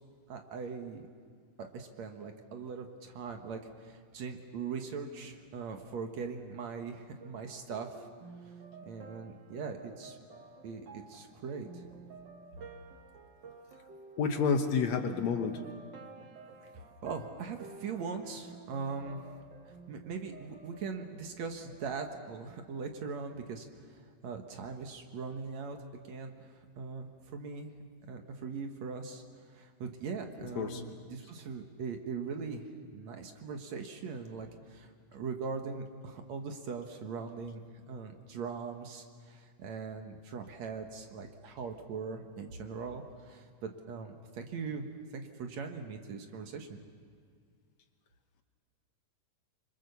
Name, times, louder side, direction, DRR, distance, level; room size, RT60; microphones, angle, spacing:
voice 1, 0.3-1.1 1.6-8.1 8.8-10.2 10.6-11.8 16.6-19.2 19.9-25.8 26.0-27.7 28.0-29.2 29.5-32.6 32.9-37.6 37.9-44.9 45.1-46.8, right 5 dB, 60° right, 4 dB, 2.5 m, -41 dB
sound 1, 7.2-23.3, right 4 dB, 45° right, 1.7 m, -52 dB
voice 2, 14.2-15.6 30.6-30.8, left 5 dB, 65° left, 6 dB, 2.2 m, -29 dB
26.0 x 25.0 x 7.0 m, 2.1 s
omnidirectional pair, 3.7 m